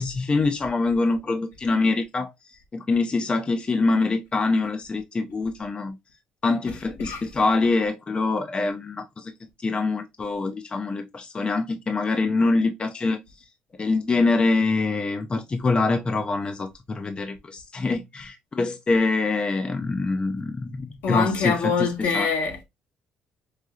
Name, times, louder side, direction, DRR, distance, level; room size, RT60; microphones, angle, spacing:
voice 1, 0.0-2.3 2.7-6.0 6.4-9.3 9.6-13.2 13.8-22.3, left 3 dB, 30° left, 0.4 m, -24 dB
voice 2, 6.7-7.2 21.0-22.7, left 5 dB, 75° left, 1.1 m, -25 dB
4.8 x 2.7 x 2.3 m
cardioid pair, 85°, 4 cm